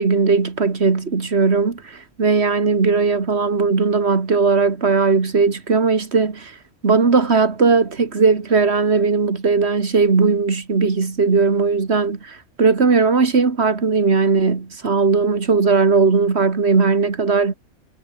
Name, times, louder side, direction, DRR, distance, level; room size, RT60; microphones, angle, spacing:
voice 1, 0.0-6.5 6.8-17.5, right 4 dB, 50° right, 2.3 m, -18 dB
omnidirectional pair, 1.4 m